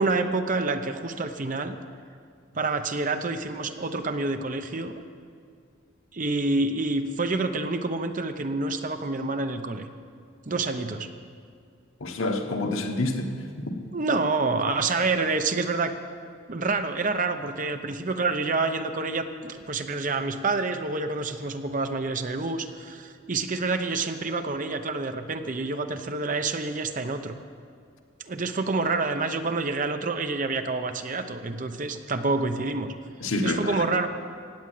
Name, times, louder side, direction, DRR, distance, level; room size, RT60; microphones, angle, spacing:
voice 1, 0.0-1.8 2.5-5.0 6.1-9.9 10.5-11.1 13.9-15.9 16.5-27.4 28.2-32.9 33.4-34.1, right 3 dB, 40° right, 8 dB, 0.8 m, -28 dB
voice 2, 12.0-13.3 13.6-13.9 33.2-33.8, left 2 dB, 90° left, 4 dB, 1.3 m, -28 dB
16.0 x 8.8 x 7.8 m, 2.2 s
head